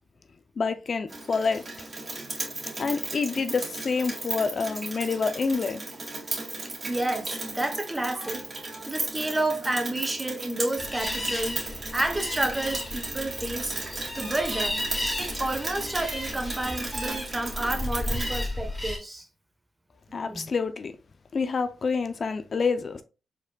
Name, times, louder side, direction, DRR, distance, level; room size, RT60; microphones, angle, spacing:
voice 1, 0.6-1.9 2.8-5.8 20.1-20.9 21.3-23.0, left 4 dB, 50° left, 0.5 m, -27 dB
Rain, 1.1-18.4, right 2 dB, 35° right, 2.1 m, -36 dB
voice 2, 6.6-13.7 14.1-14.8 15.2-19.3 20.1-20.4, right 2 dB, 20° right, 1.0 m, -30 dB
sound 1, 10.8-19.0, left 1 dB, 5° left, 2.2 m, -34 dB
4.9 x 4.3 x 2.2 m
cardioid pair, 75°, 0 cm